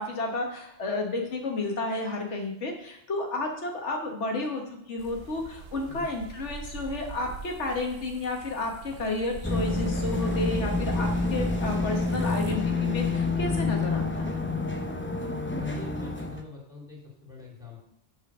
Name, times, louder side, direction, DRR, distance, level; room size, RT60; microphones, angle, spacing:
voice 1, 0.0-4.6 4.9-14.3, left 2 dB, 85° left, 2 dB, 1.6 m, -31 dB
sound 1, 5.0-12.5, right 5 dB, 65° right, 0.9 m, -44 dB
sound 2, 9.4-16.4, left 3 dB, 15° left, 0.6 m, -28 dB
voice 2, 15.2-17.9, left 2 dB, 5° right, -3 dB, 2.8 m, -44 dB
6.2 x 5.6 x 6.1 m, 0.73 s
omnidirectional pair, 1.2 m